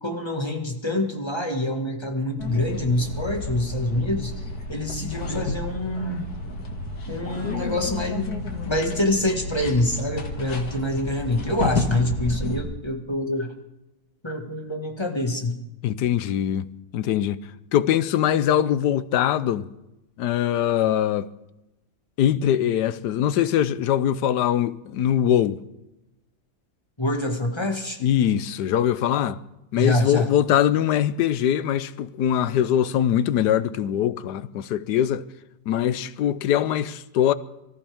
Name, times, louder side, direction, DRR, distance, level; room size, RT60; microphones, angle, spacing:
voice 1, 0.0-6.2 7.1-13.5 14.2-15.5 27.0-28.0 29.7-30.3, left 1 dB, 15° left, 1.7 m, -26 dB
sound 1, 2.4-12.6, left 3 dB, 70° left, 2.1 m, -31 dB
voice 2, 15.8-19.7 20.2-21.3 22.2-25.6 28.0-29.4 29.7-35.2 35.7-37.3, left 10 dB, 90° left, 1.3 m, -22 dB
24.5 x 14.0 x 3.5 m
omnidirectional pair, 1.7 m